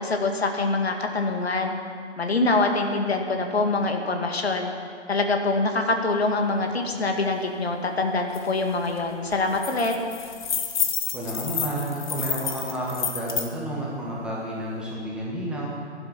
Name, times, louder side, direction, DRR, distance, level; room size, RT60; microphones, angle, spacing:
voice 1, 0.0-1.7 2.2-4.7 5.1-9.9, left 3 dB, 60° left, 4 dB, 2.0 m, -24 dB
sound 1, 8.3-8.4 8.8-9.0 9.3-13.5, left 6 dB, 40° left, 1.4 m, -29 dB
voice 2, 11.1-15.7, right 1 dB, ahead, -5 dB, 1.7 m, -31 dB
16.5 x 11.5 x 5.8 m, 2.1 s
figure-of-eight pair, 140°, 36 cm